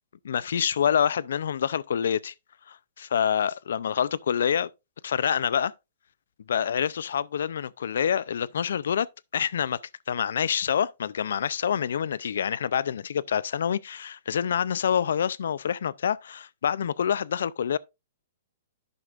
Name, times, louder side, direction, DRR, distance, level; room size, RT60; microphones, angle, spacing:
voice 1, 0.2-2.3 2.7-4.7 5.0-5.7 6.5-9.1 9.3-9.8 10.1-17.8, left 8 dB, 70° left, 0.4 m, -26 dB
11.0 x 7.8 x 2.4 m
hypercardioid pair, 170°, 0 cm